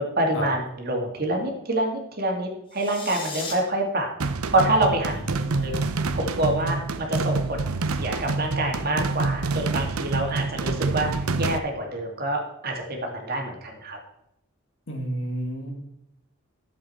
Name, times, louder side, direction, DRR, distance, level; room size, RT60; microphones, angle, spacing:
voice 1, 0.0-4.1 4.5-5.1 5.6-5.7 6.1-14.0, right 1 dB, 45° right, 1 dB, 2.2 m, -26 dB
sound 1, 2.7-3.5, left 4 dB, 25° left, 1.9 m, -36 dB
sound 2, 4.2-11.6, right 3 dB, 85° right, 0.8 m, -27 dB
voice 2, 5.3-5.8 14.9-15.7, equal, 60° left, 2 dB, 2.2 m, -31 dB
12.5 x 7.6 x 4.4 m, 0.81 s
head